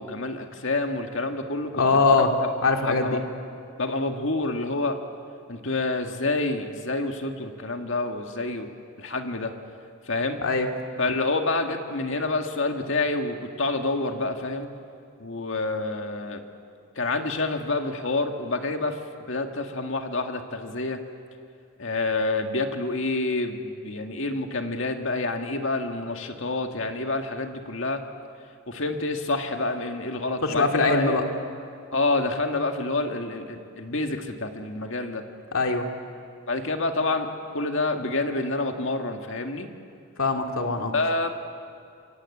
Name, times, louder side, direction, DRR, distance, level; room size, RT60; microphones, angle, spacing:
voice 1, 0.0-2.1 2.8-3.2 3.8-5.0 5.5-8.7 9.0-9.5 10.1-10.4 11.0-14.7 15.2-16.4 17.0-19.0 19.3-21.0 21.8-28.0 28.7-31.2 31.9-35.2 36.5-39.7 40.9-41.3, left 2 dB, 65° left, 4 dB, 2.0 m, -28 dB
voice 2, 1.8-2.3 2.6-3.2 10.4-10.7 30.4-31.2 35.5-35.9 40.2-40.9, left 3 dB, 80° left, 3 dB, 2.4 m, -22 dB
27.5 x 23.0 x 8.7 m, 2.4 s
head